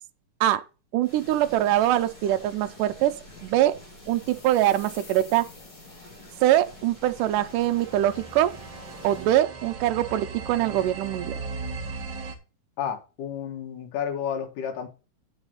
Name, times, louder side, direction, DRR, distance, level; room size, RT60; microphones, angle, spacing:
voice 1, 0.9-3.1 3.4-3.7 4.1-5.5 6.4-8.5 9.0-11.3, right 13 dB, 80° right, 2.3 m, -23 dB
sound 1, 1.0-9.3, left 1 dB, 30° left, 6.6 m, -47 dB
sound 2, 3.7-6.8, left 5 dB, 55° left, 2.9 m, -51 dB
sound 3, 6.9-12.3, right 4 dB, 40° right, 2.4 m, -38 dB
voice 2, 12.8-14.9, left 8 dB, 75° left, 3.2 m, -31 dB
9.8 x 5.9 x 5.7 m
omnidirectional pair, 3.8 m